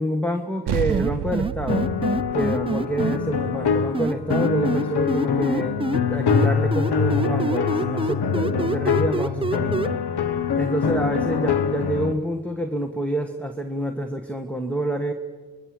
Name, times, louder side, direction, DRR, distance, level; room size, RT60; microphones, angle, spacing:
voice 1, 0.0-1.9 2.3-5.8 6.1-10.0 10.6-15.1, right 1 dB, 5° left, 6 dB, 1.6 m, -27 dB
sound 1, 0.7-5.5, right 11 dB, 85° right, 0.7 m, -32 dB
sound 2, 0.9-3.2 3.9-6.0 6.3-9.9, right 3 dB, 15° right, 0.7 m, -26 dB
sound 3, 1.7-12.1, left 6 dB, 75° left, 1.3 m, -24 dB
25.5 x 21.5 x 7.9 m, 1.5 s
cardioid pair, 75°, 39 cm